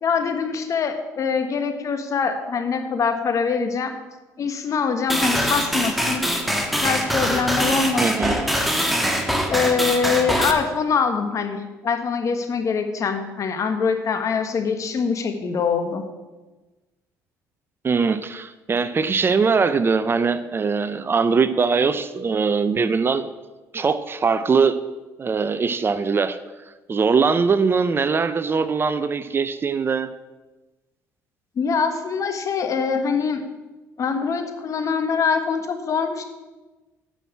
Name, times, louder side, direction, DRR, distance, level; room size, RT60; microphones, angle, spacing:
voice 1, 0.0-3.9 4.4-6.3 6.8-8.1 9.5-16.0 31.5-33.4 34.0-36.2, left 5 dB, 50° left, 7 dB, 1.5 m, -23 dB
sound 1, 5.1-10.5, equal, ahead, 1.6 m, -23 dB
voice 2, 8.0-8.5 17.8-23.3 23.7-24.8 25.2-26.4 26.9-30.1, right 5 dB, 35° right, 13 dB, 0.6 m, -21 dB
9.0 x 6.1 x 8.4 m, 1.2 s
supercardioid pair, 80°, 7 cm